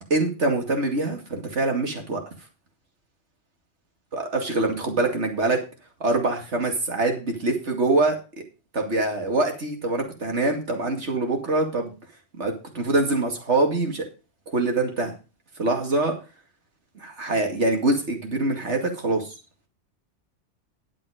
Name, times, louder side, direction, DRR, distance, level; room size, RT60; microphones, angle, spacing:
voice 1, 0.1-2.2 4.1-5.6 6.0-8.2 8.7-11.9 12.4-14.1 14.5-15.1 15.6-16.1 17.0-19.3, right 2 dB, 75° right, 3 dB, 2.7 m, -24 dB
11.0 x 7.9 x 5.1 m, 0.32 s
omnidirectional pair, 1.2 m